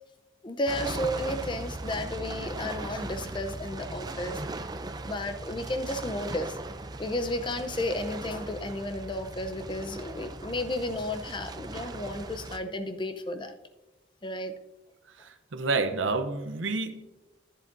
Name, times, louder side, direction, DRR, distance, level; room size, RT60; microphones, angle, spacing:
voice 1, 0.4-4.4 5.1-6.6 7.0-13.5 14.2-14.5, left 1 dB, 25° left, 8 dB, 0.6 m, -33 dB
sound 1, 0.7-12.6, right 2 dB, 20° right, 0.5 m, -38 dB
voice 2, 15.2-17.0, right 3 dB, 90° right, 8 dB, 0.7 m, -29 dB
11.0 x 10.5 x 2.6 m, 1.1 s
head